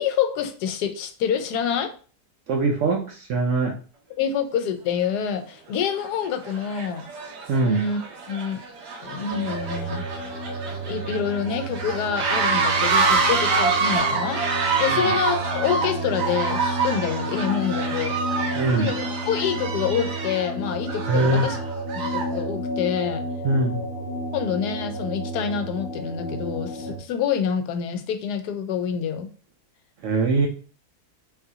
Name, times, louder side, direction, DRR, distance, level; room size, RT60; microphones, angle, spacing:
voice 1, 0.0-1.9 4.2-7.1 7.6-8.0 8.3-8.6 9.0-10.1 10.9-14.4 14.8-18.2 18.7-21.6 21.9-23.2 24.3-29.3, left 7 dB, 85° left, 8 dB, 1.1 m, -27 dB
voice 2, 2.5-3.7 7.5-7.8 14.9-15.1 18.5-18.9 21.1-21.5 23.4-23.8 30.0-30.5, right 3 dB, 70° right, 1 dB, 0.7 m, -22 dB
sound 1, 5.0-5.1 5.8-6.1 6.4-22.4, right 4 dB, 90° right, 1.4 m, -27 dB
sound 2, 9.3-27.0, right 1 dB, 70° left, 0.5 m, -31 dB
4.0 x 2.4 x 2.7 m, 0.39 s
omnidirectional pair, 1.7 m